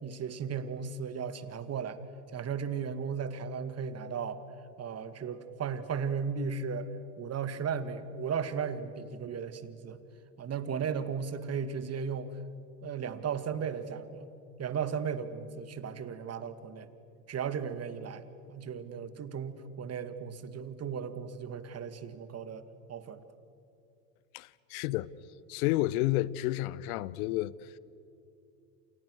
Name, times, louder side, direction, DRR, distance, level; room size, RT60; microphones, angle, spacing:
voice 1, 0.0-2.0 2.3-4.4 4.8-6.9 7.2-10.0 10.4-12.4 12.8-14.3 14.6-16.9 17.3-23.2, right 6 dB, 30° right, 2.1 m, -36 dB
voice 2, 24.3-25.1 25.5-27.8, left 17 dB, 65° left, 1.0 m, -31 dB
29.5 x 28.0 x 6.5 m
hypercardioid pair, 90°, 47 cm